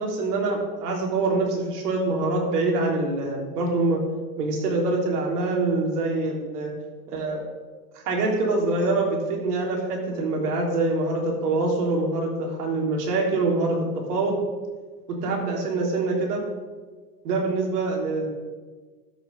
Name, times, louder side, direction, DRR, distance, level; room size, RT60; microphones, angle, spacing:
voice 1, 0.0-4.0 4.4-6.7 7.1-7.4 8.1-13.8 14.1-14.4 15.1-16.4 17.2-18.3, right 3 dB, 70° right, 0 dB, 3.6 m, -25 dB
13.0 x 6.5 x 5.4 m, 1.4 s
supercardioid pair, 140°, 48 cm